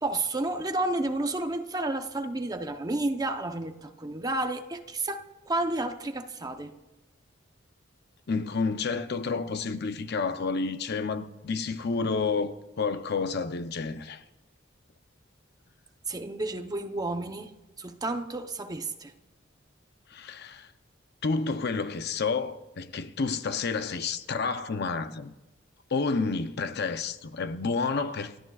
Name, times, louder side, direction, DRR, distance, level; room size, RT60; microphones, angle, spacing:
voice 1, 0.0-6.7 16.1-17.5 17.8-19.1, right 2 dB, 20° right, 0.8 m, -31 dB
voice 2, 8.3-14.2 20.1-20.7 21.2-25.3 25.9-28.4, left 4 dB, 55° left, 0.7 m, -30 dB
29.5 x 13.5 x 2.4 m
head